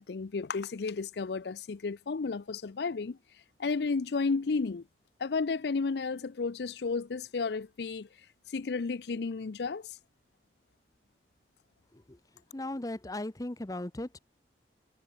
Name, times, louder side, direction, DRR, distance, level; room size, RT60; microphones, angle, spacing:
voice 1, 0.1-3.2 3.6-4.8 5.2-8.1 8.5-10.0, left 4 dB, 70° left, 0.5 m, -32 dB
voice 2, 12.5-14.2, left 1 dB, 20° left, 0.7 m, -37 dB
head